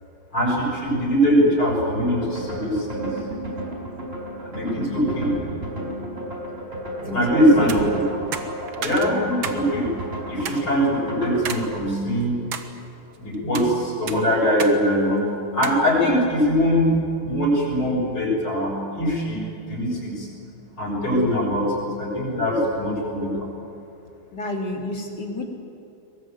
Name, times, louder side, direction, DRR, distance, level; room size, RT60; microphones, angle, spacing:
voice 1, 0.3-3.1 4.4-5.3 7.0-7.8 8.1-8.2 8.8-9.9 10.3-12.3 13.2-16.9 17.2-20.3 20.8-23.5, equal, 75° left, -3 dB, 9.0 m, -22 dB
sound 1, 2.1-11.7, right 1 dB, 25° right, 4.9 m, -32 dB
voice 2, 7.1-8.0 24.3-25.5, left 1 dB, 50° left, 2 dB, 3.9 m, -29 dB
sound 2, 7.6-7.8 8.3-9.6 10.0-10.1 10.5-10.6 11.5-11.7 12.1-12.7 13.3-13.7 14.1-14.8 15.0-15.1 15.6-15.8, right 7 dB, 70° right, 2.3 m, -31 dB
23.0 x 21.0 x 9.6 m, 2.8 s
omnidirectional pair, 2.3 m